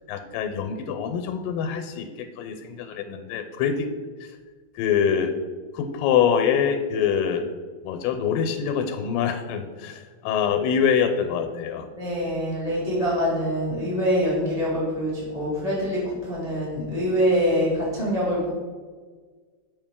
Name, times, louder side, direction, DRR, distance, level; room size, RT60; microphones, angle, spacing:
voice 1, 0.1-3.9 4.2-4.3 4.8-5.4 5.7-7.5 7.8-11.9, left 7 dB, 85° left, 7 dB, 2.3 m, -25 dB
voice 2, 11.9-18.5, equal, 30° left, -7 dB, 0.6 m, -25 dB
7.0 x 5.4 x 3.6 m, 1.5 s
omnidirectional pair, 4.0 m